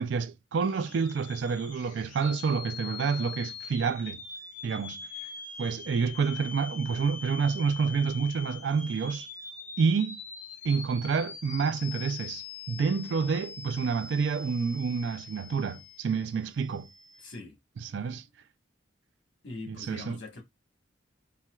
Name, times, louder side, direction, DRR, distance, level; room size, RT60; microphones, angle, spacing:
voice 1, 0.0-4.2 4.6-5.0 5.6-9.3 9.8-10.2 10.6-16.9 17.8-18.2 19.7-20.2, right 5 dB, 70° right, 0.3 m, -28 dB
sound 1, 0.6-17.4, left 5 dB, 45° left, 0.9 m, -43 dB
voice 2, 17.2-17.6 19.4-20.4, left 3 dB, 80° left, 1.3 m, -42 dB
4.2 x 2.3 x 2.3 m
head